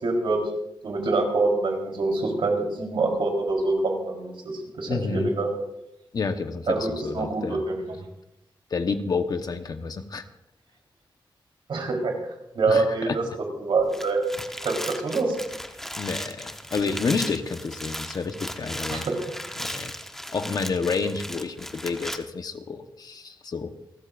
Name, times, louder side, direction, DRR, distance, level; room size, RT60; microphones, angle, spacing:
voice 1, 0.0-0.4 0.8-5.5 6.7-8.0 11.7-12.1 12.5-13.2 13.6-14.2 14.6-15.3 18.9-19.2, right 3 dB, 85° right, 1 dB, 3.8 m, -25 dB
voice 2, 4.9-5.3 6.1-7.6 8.7-10.2 12.7-13.2 16.0-19.0 19.6-19.9 20.3-23.7, left 4 dB, 50° left, 7 dB, 1.1 m, -29 dB
sound 1, 13.8-22.2, equal, 5° left, 1.0 m, -36 dB
29.5 x 13.5 x 2.6 m, 0.86 s
wide cardioid pair, 150°, 9 cm